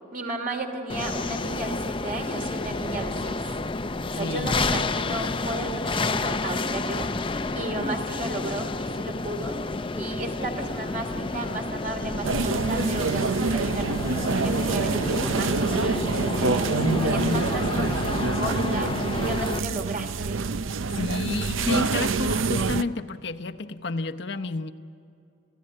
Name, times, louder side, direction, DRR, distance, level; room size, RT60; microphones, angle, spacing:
voice 1, 0.1-3.6 4.1-7.1 7.5-9.6 9.9-18.9 19.2-20.4, right 1 dB, 45° right, 3 dB, 2.9 m, -34 dB
sound 1, 0.9-19.6, left 3 dB, 25° left, 0.6 m, -30 dB
voice 2, 4.2-4.6 7.5-7.6 16.8-17.5 17.7-18.3 19.2-19.3 21.0-24.7, left 3 dB, 60° left, 6 dB, 0.8 m, -31 dB
sound 2, 6.5-22.5, left 1 dB, 5° right, 0.8 m, -44 dB
sound 3, 12.2-22.8, right 4 dB, 90° right, 0.6 m, -26 dB
29.5 x 15.5 x 9.8 m, 2.6 s
head